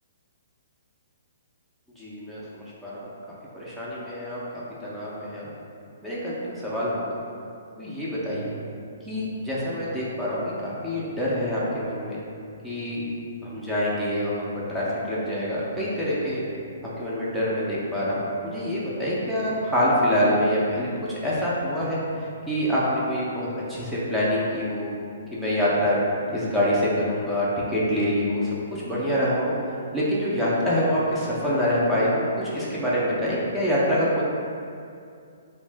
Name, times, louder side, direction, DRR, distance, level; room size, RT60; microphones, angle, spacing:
voice 1, 2.0-3.0 3.5-4.4 4.8-5.5 6.0-7.1 7.8-8.5 9.1-12.2 12.6-13.0 13.4-14.4 14.7-16.4 17.0-22.0 22.5-24.9 25.3-26.0 26.3-29.5 29.9-34.2, equal, ahead, -9 dB, 0.4 m, -26 dB
sound 1, 8.3-25.7, right 2 dB, 80° left, 0.4 m, -51 dB
2.4 x 2.1 x 3.2 m, 2.4 s
hypercardioid pair, 160°, 0 cm